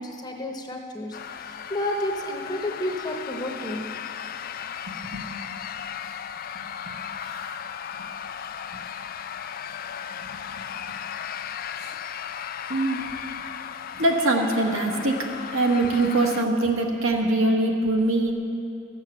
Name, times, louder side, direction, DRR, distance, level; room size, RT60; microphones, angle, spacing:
voice 1, 0.0-3.9, left 1 dB, 20° left, 2 dB, 0.9 m, -31 dB
sound 1, 1.1-16.4, left 8 dB, 45° left, 0.3 m, -36 dB
voice 2, 6.6-7.0 7.9-8.0 10.2-10.4 10.9-11.0 12.7-13.1 13.9-15.3 15.5-18.3, right 2 dB, 80° right, 1 dB, 1.5 m, -23 dB
13.5 x 7.7 x 6.9 m, 2.7 s
head